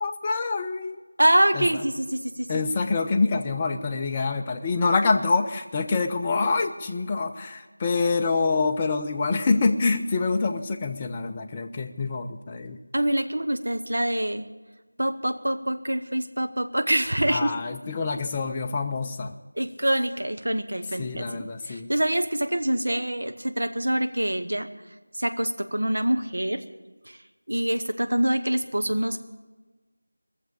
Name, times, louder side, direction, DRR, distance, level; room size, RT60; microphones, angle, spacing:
voice 1, 0.0-1.0 1.5-1.7 2.5-12.8 17.3-19.3 21.0-21.9, left 4 dB, 15° left, 4 dB, 0.5 m, -26 dB
voice 2, 1.2-2.5 12.9-14.5 15.0-17.5 19.6-24.7 25.1-26.6 27.0-27.2 27.5-29.2, right 1 dB, 60° right, 7 dB, 1.0 m, -25 dB
19.0 x 7.4 x 8.4 m, 1.3 s
figure-of-eight pair, 170°, 0 cm